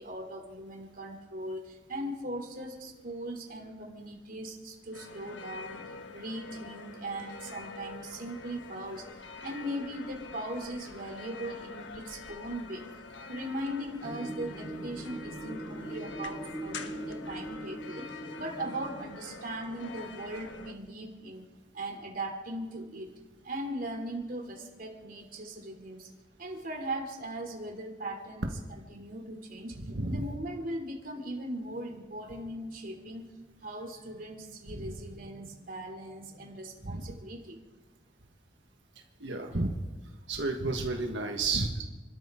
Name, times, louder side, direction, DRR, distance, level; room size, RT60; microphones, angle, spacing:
voice 1, 0.0-5.8 6.1-9.1 9.4-12.8 13.3-21.4 21.7-23.1 23.4-26.1 26.4-28.5 28.9-29.8 30.1-33.4 33.6-37.6, right 1 dB, 50° right, 2 dB, 3.2 m, -39 dB
sound 1, 4.9-20.7, left 4 dB, 85° left, 1.3 m, -46 dB
sound 2, 14.0-19.1, right 1 dB, 20° left, 7.5 m, -41 dB
voice 2, 29.9-30.2 34.7-34.9 36.8-37.1 39.2-39.8 40.3-41.8, right 3 dB, 75° right, 2 dB, 1.6 m, -31 dB
29.0 x 13.0 x 3.8 m, 1.2 s
head